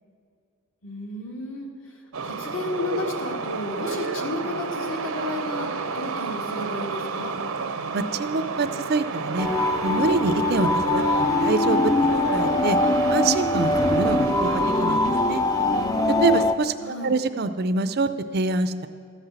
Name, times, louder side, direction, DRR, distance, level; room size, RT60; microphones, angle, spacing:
voice 1, 0.8-7.3 16.8-17.2, left 2 dB, 65° left, 1 dB, 1.7 m, -33 dB
sound 1, 2.1-16.4, right 4 dB, 80° right, 0.7 m, -31 dB
voice 2, 7.9-9.5 9.8-11.9 12.3-12.8 13.1-15.4 16.2-18.9, right 3 dB, 45° right, 11 dB, 0.4 m, -25 dB
sound 2, 9.4-16.5, left 2 dB, 15° left, 0.4 m, -22 dB
13.5 x 5.7 x 8.0 m, 2.2 s
head